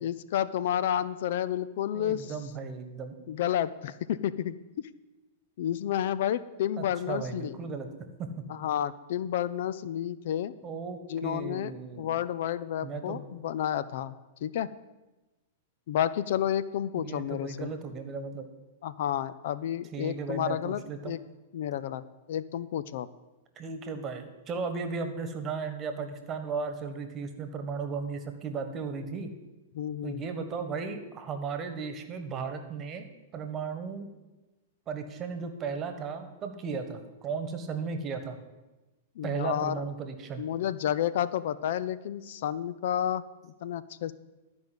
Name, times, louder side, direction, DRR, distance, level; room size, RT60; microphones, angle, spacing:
voice 1, 0.0-2.3 3.3-4.9 5.6-7.6 8.5-10.5 11.1-11.7 12.0-14.1 14.4-14.7 15.9-17.7 18.8-21.2 21.5-22.0 22.3-23.1 29.7-30.2 39.2-39.8 40.4-44.1, left 10 dB, 65° left, 16 dB, 0.5 m, -31 dB
voice 2, 1.9-3.1 6.8-7.9 8.2-8.3 10.6-12.1 12.8-13.3 16.9-18.5 19.9-21.1 23.6-29.3 30.0-33.1 33.3-34.1 34.9-38.4 39.2-40.4, right 5 dB, 30° right, 7 dB, 1.4 m, -35 dB
12.5 x 5.2 x 8.0 m, 1.1 s
hypercardioid pair, 130°, 0 cm